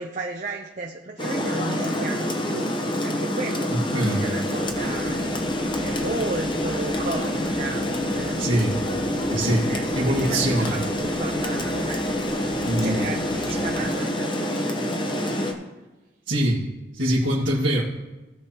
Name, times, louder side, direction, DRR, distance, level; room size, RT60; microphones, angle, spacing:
voice 1, 0.0-2.7 3.0-3.7 4.2-5.1 5.8-8.8 9.7-12.0 12.8-15.5, right 2 dB, 40° right, 2 dB, 0.7 m, -34 dB
Rain, 1.2-15.5, left 1 dB, 25° left, 0.9 m, -27 dB
voice 2, 3.9-4.2 8.4-8.7 9.3-10.7 12.6-13.0 16.3-16.6 16.9-17.8, right 1 dB, 90° right, -7 dB, 1.8 m, -23 dB
sound 1, 4.6-13.9, right 1 dB, 70° right, 1.0 m, -42 dB
16.5 x 7.2 x 2.9 m, 1.1 s
head